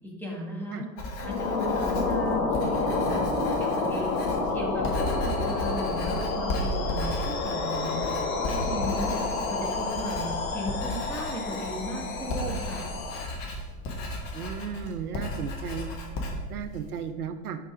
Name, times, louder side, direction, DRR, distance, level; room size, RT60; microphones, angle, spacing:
voice 1, 0.0-0.9 1.2-4.2 4.5-8.2 8.5-12.8, equal, 5° left, -2 dB, 1.4 m, -36 dB
Writing, 1.0-17.1, left 1 dB, 45° left, 1.4 m, -35 dB
sound 1, 1.2-13.3, left 3 dB, 65° left, 1.0 m, -29 dB
voice 2, 14.3-15.9 16.5-17.6, right 7 dB, 75° right, 10 dB, 0.5 m, -35 dB
5.3 x 4.6 x 4.8 m, 1.4 s
figure-of-eight pair, 80°, 45 cm